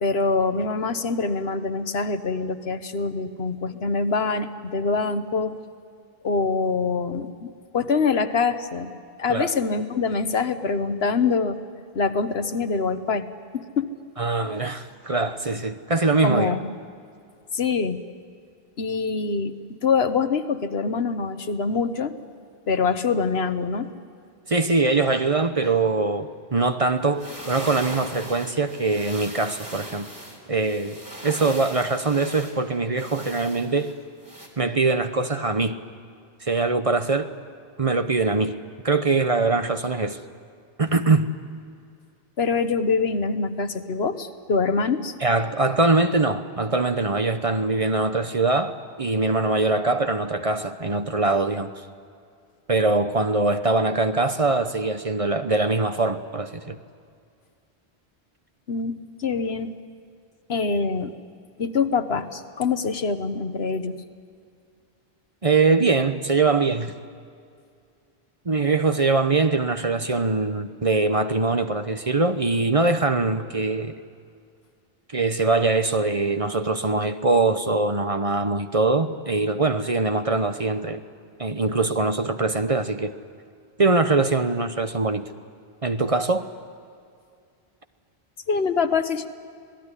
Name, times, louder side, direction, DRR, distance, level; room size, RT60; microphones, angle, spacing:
voice 1, 0.0-5.6 6.2-8.9 9.2-11.6 11.9-13.3 13.5-13.9 16.2-16.7 17.5-18.0 18.8-19.5 19.8-22.2 22.7-23.9 42.4-45.1 58.7-59.7 60.5-61.1 61.6-64.0 88.5-89.3, left 4 dB, 75° left, 10 dB, 1.4 m, -24 dB
voice 2, 14.2-16.6 24.5-30.1 30.5-31.0 31.2-33.9 34.6-35.8 36.4-37.3 37.8-38.6 38.8-40.2 40.8-41.3 45.2-51.7 52.7-56.8 65.4-66.9 68.5-74.0 75.1-81.0 81.4-83.1 83.8-85.3 85.8-86.4, right 3 dB, 35° right, 9 dB, 0.9 m, -22 dB
sound 1, 27.0-34.5, equal, 20° right, 3.8 m, -40 dB
26.5 x 18.5 x 9.9 m, 2.3 s
omnidirectional pair, 1.1 m